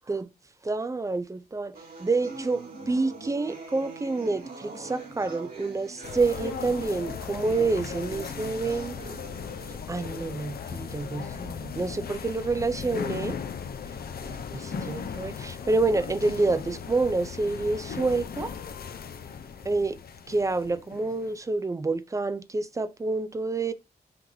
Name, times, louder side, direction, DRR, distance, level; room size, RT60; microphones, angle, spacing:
voice 1, 0.6-1.7 2.0-9.2 9.9-13.4 14.3-18.5 19.6-20.0 20.3-23.7, right 3 dB, 20° right, 0.5 m, -28 dB
sound 1, 1.7-9.7, right 3 dB, 60° right, 2.6 m, -43 dB
sound 2, 6.0-21.4, left 6 dB, 65° left, 0.6 m, -37 dB
5.8 x 3.2 x 2.7 m
wide cardioid pair, 155°, 17 cm